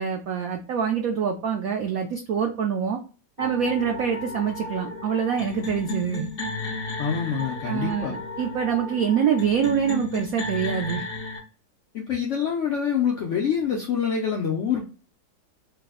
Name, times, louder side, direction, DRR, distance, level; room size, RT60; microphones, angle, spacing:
voice 1, 0.0-3.0 3.4-6.3 7.7-11.0, right 7 dB, 90° right, 3 dB, 0.7 m, -25 dB
sound 1, 3.4-11.4, left 2 dB, 40° left, 0.9 m, -34 dB
voice 2, 7.0-8.2 11.9-14.8, left 7 dB, 80° left, -1 dB, 0.6 m, -26 dB
3.2 x 2.0 x 3.5 m, 0.35 s
omnidirectional pair, 2.0 m